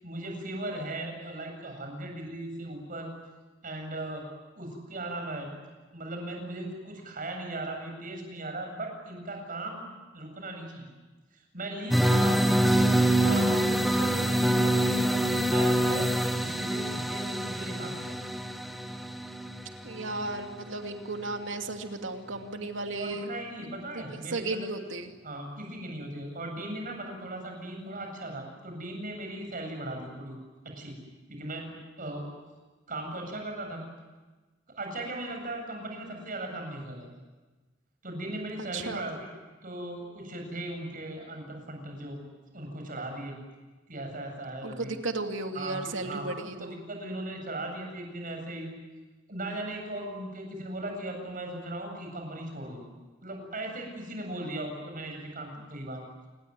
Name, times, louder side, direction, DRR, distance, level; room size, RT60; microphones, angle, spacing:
voice 1, 0.0-3.1 3.6-4.2 4.6-5.5 5.9-10.9 11.3-12.8 13.2-18.2 23.0-24.7 25.2-30.4 30.8-30.9 31.3-32.3 32.9-33.8 34.8-37.1 38.0-39.3 39.6-42.2 42.5-43.4 43.9-44.9 45.5-45.7 46.0-48.7 49.3-52.8 53.2-56.0, right 1 dB, 45° right, 3 dB, 7.8 m, -38 dB
sound 1, 11.9-20.7, right 1 dB, ahead, 1.5 m, -25 dB
voice 2, 19.8-23.3 23.6-24.0 24.3-25.1 38.6-39.0 44.6-46.8, right 2 dB, 90° right, 5 dB, 2.7 m, -35 dB
28.5 x 20.5 x 9.7 m, 1.2 s
head